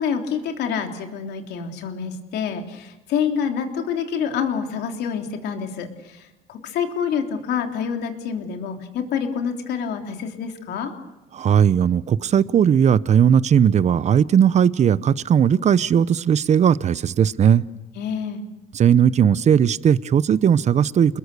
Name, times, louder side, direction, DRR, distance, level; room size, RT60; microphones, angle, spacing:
voice 1, 0.0-10.9 18.0-18.4, left 7 dB, 75° left, 4 dB, 3.4 m, -27 dB
voice 2, 11.3-17.6 18.7-21.2, right 8 dB, 40° right, 18 dB, 0.8 m, -17 dB
28.5 x 21.5 x 6.8 m, 1.1 s
cardioid pair, 110°, 17 cm